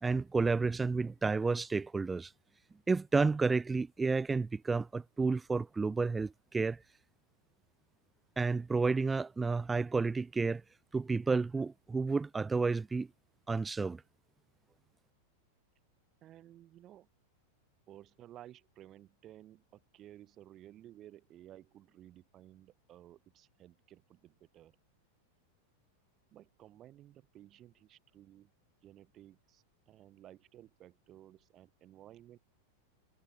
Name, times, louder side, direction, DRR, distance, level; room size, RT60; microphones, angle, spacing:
voice 1, 0.0-2.3 2.9-6.8 8.4-10.6 10.9-13.1 13.5-14.0, right 4 dB, 10° right, 0.5 m, -31 dB
voice 2, 16.2-17.1 17.9-24.7 26.3-28.5 28.8-32.4, right 13 dB, 30° right, 2.9 m, -56 dB
figure-of-eight pair, 90°, 0 cm